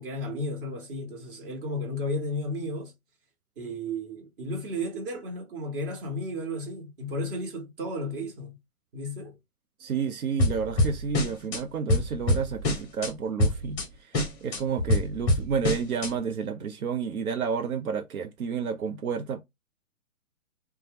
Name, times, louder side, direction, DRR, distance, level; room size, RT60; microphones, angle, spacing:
voice 1, 0.0-2.9 3.6-8.6 8.9-9.4, left 1 dB, 40° right, 1.2 m, -33 dB
voice 2, 9.8-19.4, right 6 dB, 80° right, 0.7 m, -31 dB
sound 1, 10.4-11.6 11.9-13.1 13.4-13.8 14.1-16.1, left 1 dB, 10° left, 0.7 m, -25 dB
2.6 x 2.3 x 3.2 m
hypercardioid pair, 145°, 42 cm